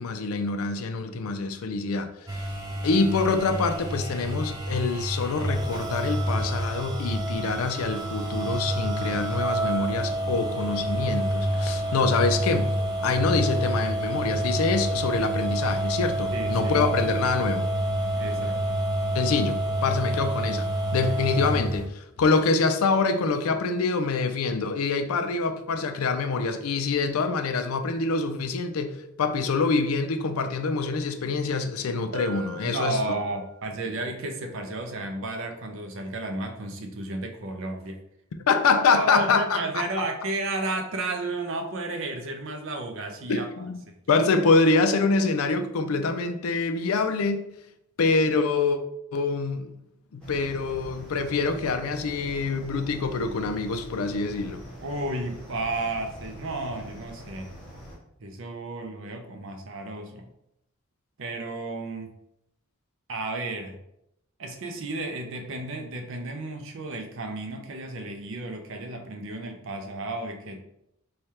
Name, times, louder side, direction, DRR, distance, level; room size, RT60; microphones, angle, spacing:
voice 1, 0.0-2.5 2.8-12.7 13.0-17.7 19.1-33.1 38.5-39.8 43.3-47.5 48.0-48.8 49.1-49.7 50.1-54.6, left 4 dB, 85° left, 0.4 m, -25 dB
sound 1, 2.3-21.9, right 1 dB, 20° right, 0.5 m, -28 dB
voice 2, 16.3-16.8 18.2-18.8 32.6-38.0 38.9-43.5 43.9-44.0 54.8-57.5 58.2-60.3 61.2-62.1 63.1-63.8 64.4-70.6, right 2 dB, 65° right, 0.6 m, -33 dB
Bell, 32.1-33.7, right 1 dB, 85° right, 0.9 m, -40 dB
sound 2, 50.2-58.0, equal, 5° left, 1.1 m, -43 dB
3.2 x 2.3 x 4.2 m
head